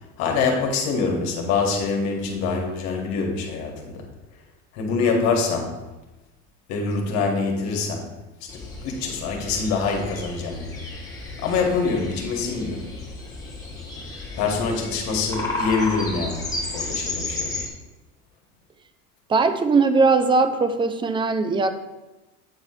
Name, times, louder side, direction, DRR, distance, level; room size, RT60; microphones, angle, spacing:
voice 1, 0.2-4.1 4.7-5.8 6.7-8.1 8.4-10.8 11.4-12.9 14.3-17.6, left 4 dB, 60° left, 1 dB, 1.7 m, -25 dB
sound 1, 8.5-17.7, left 2 dB, 10° left, 1.5 m, -33 dB
voice 2, 19.3-21.7, right 4 dB, 15° right, 9 dB, 0.4 m, -19 dB
8.7 x 3.2 x 5.9 m, 1.1 s
cardioid pair, 145°, 31 cm